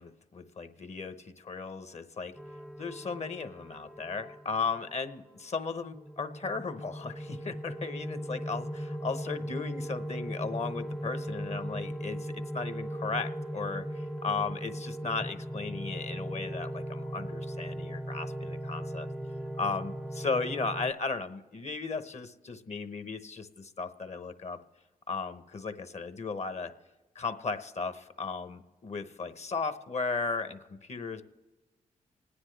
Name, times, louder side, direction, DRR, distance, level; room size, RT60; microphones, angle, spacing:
voice 1, 0.0-2.3 2.8-19.1 19.6-24.6 25.1-26.7 27.1-31.2, left 4 dB, 50° left, 10 dB, 1.0 m, -36 dB
sound 1, 2.4-5.0 5.7-20.9, equal, ahead, 0.5 m, -38 dB
26.5 x 9.8 x 3.3 m, 1.2 s
cardioid pair, 55°, 15 cm